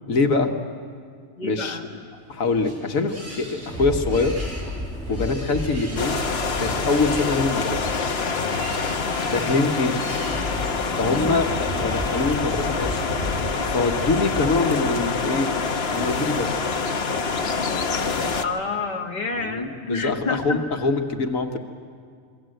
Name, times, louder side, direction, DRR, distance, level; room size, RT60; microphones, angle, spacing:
voice 1, 0.1-0.5 1.4-2.0 2.3-4.3 5.1-6.2 6.6-7.9 9.3-10.1 10.9-11.5 11.8-13.0 13.6-15.5 15.9-16.5 19.4-21.6, left 3 dB, 85° left, 4 dB, 1.7 m, -24 dB
voice 2, 1.4-1.8 9.0-9.6 11.1-11.4 18.4-20.7, left 4 dB, 35° left, 1 dB, 1.9 m, -29 dB
sound 1, 2.0-10.9, equal, 65° right, 5.2 m, -41 dB
sound 2, 3.1-14.6, left 1 dB, 5° left, 1.6 m, -33 dB
sound 3, 6.0-18.4, left 4 dB, 50° left, 1.3 m, -26 dB
27.5 x 22.5 x 7.8 m, 2.1 s
omnidirectional pair, 1.4 m